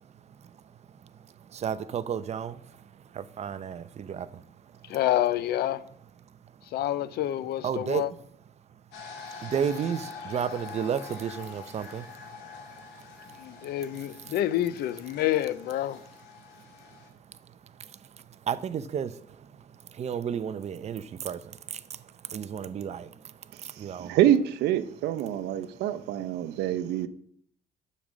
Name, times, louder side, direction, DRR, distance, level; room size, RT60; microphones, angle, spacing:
voice 1, 1.5-2.5 3.2-4.3 7.6-8.0 9.4-12.0 18.5-19.1 20.0-21.4 22.3-23.1 23.8-24.1, right 8 dB, 40° right, 0.7 m, -31 dB
voice 2, 4.9-5.8 6.7-8.1 13.4-16.0, left 13 dB, 70° left, 0.6 m, -28 dB
sound 1, 8.9-17.1, left 6 dB, 85° left, 2.3 m, -45 dB
voice 3, 23.8-27.1, right 11 dB, 80° right, 0.8 m, -26 dB
7.2 x 6.6 x 7.3 m
cardioid pair, 110°, 17 cm